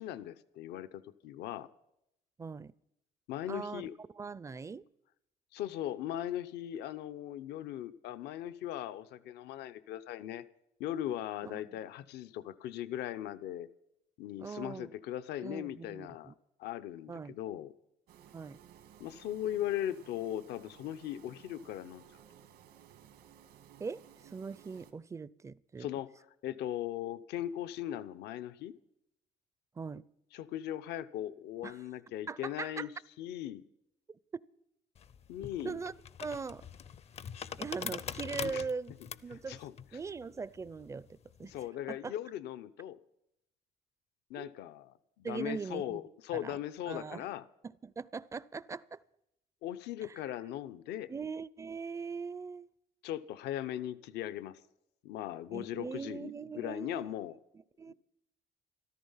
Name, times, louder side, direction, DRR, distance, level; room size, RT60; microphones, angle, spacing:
voice 1, 0.0-1.7 3.3-3.9 5.5-10.4 10.8-13.7 14.2-16.3 16.6-17.7 19.0-22.0 25.8-26.1 26.4-28.7 30.3-32.9 33.2-33.6 35.3-35.8 38.4-38.6 39.3-39.7 41.4-43.0 44.3-47.4 49.6-51.1 53.0-54.6 55.0-57.4, left 12 dB, 80° left, 0.7 m, -39 dB
voice 2, 2.4-2.7 3.5-3.8 4.1-4.8 11.4-11.8 14.4-14.9 15.4-16.3 17.1-17.3 18.3-18.6 23.8-25.9 29.8-30.1 31.6-31.8 32.3-32.9 34.3-34.4 35.6-35.9 36.2-36.6 37.6-38.9 39.2-39.6 39.9-41.6 41.9-42.1 44.4-44.5 45.2-46.0 46.3-46.6 46.9-47.3 47.6-49.0 50.0-50.2 51.1-52.7 55.5-57.1 57.5-57.9, right 5 dB, 20° right, 0.4 m, -41 dB
sound 1, 18.1-24.9, right 9 dB, 85° right, 2.0 m, -58 dB
sound 2, 34.9-41.6, left 7 dB, 40° left, 0.5 m, -44 dB
14.0 x 13.5 x 5.6 m
cardioid pair, 110°, 17 cm